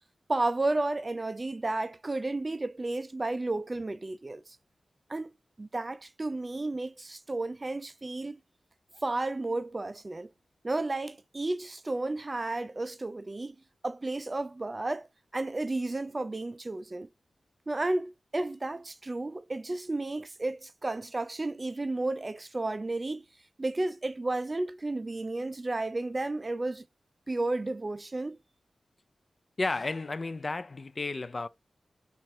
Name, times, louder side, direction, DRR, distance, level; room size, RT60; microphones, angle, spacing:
voice 1, 0.3-4.6 5.1-8.4 9.0-10.3 10.6-13.6 13.8-15.1 15.3-17.1 17.7-23.3 23.6-26.8 27.3-28.4, right 2 dB, 35° right, 0.3 m, -32 dB
voice 2, 29.6-31.5, left 3 dB, 45° left, 0.3 m, -32 dB
4.2 x 2.4 x 3.1 m
cardioid pair, 55°, 0 cm